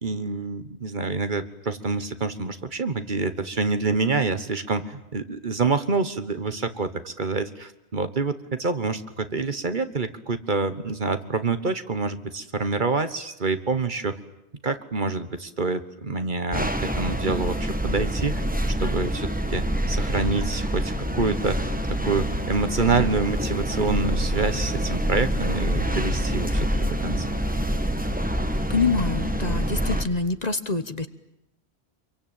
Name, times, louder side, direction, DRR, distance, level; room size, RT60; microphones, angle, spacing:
voice 1, 0.0-14.2 14.6-18.4 18.8-27.3, right 3 dB, 50° right, 10 dB, 1.4 m, -27 dB
sound 1, 16.5-30.0, equal, 10° right, 1.4 m, -26 dB
voice 2, 28.7-31.1, left 4 dB, 40° left, 11 dB, 1.2 m, -25 dB
27.0 x 23.5 x 9.1 m, 0.86 s
omnidirectional pair, 1.1 m